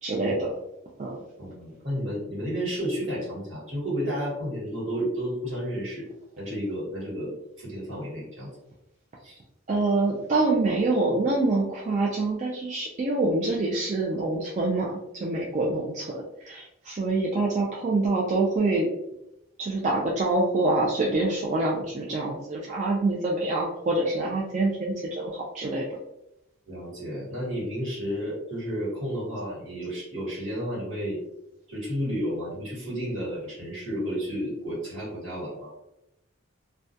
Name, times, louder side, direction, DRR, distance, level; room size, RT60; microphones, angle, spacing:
voice 1, 0.0-0.5 1.0-1.2 9.7-18.9 19.6-26.0, right 2 dB, 35° right, -4 dB, 0.3 m, -26 dB
voice 2, 1.4-6.0 6.4-8.5 9.2-9.4 26.7-31.2 31.7-35.8, equal, 70° right, -6 dB, 1.3 m, -32 dB
2.3 x 2.1 x 2.6 m, 0.86 s
head